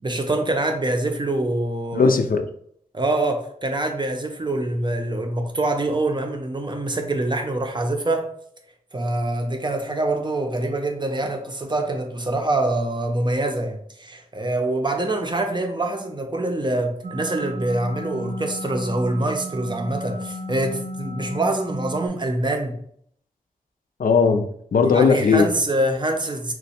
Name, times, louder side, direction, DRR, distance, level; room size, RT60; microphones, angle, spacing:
voice 1, 0.0-2.1 2.9-8.3 8.9-22.8 24.8-26.5, right 2 dB, 30° right, 0.5 m, -25 dB
voice 2, 1.9-2.5 24.0-25.5, left 5 dB, 75° left, 0.4 m, -18 dB
sound 1, 17.0-22.1, equal, 75° right, 0.5 m, -33 dB
3.0 x 2.1 x 4.2 m
wide cardioid pair, 85°, 15 cm